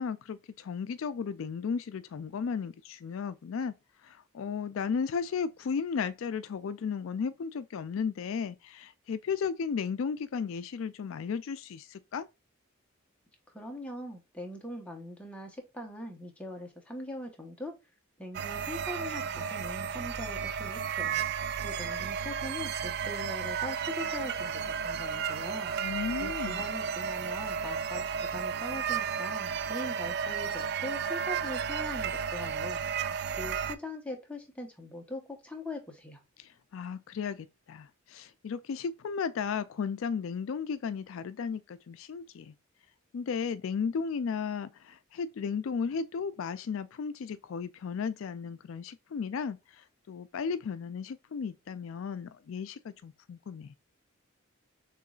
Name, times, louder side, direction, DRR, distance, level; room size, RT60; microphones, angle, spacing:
voice 1, 0.0-3.7 4.0-12.3 25.8-26.6 36.4-42.5 43.1-53.8, left 6 dB, 70° left, 0.3 m, -35 dB
voice 2, 13.5-17.7 18.2-21.2 21.6-25.7 26.2-36.2, left 1 dB, 5° left, 1.0 m, -42 dB
sound 1, 18.3-33.8, right 7 dB, 50° right, 0.3 m, -33 dB
6.6 x 3.1 x 2.4 m
head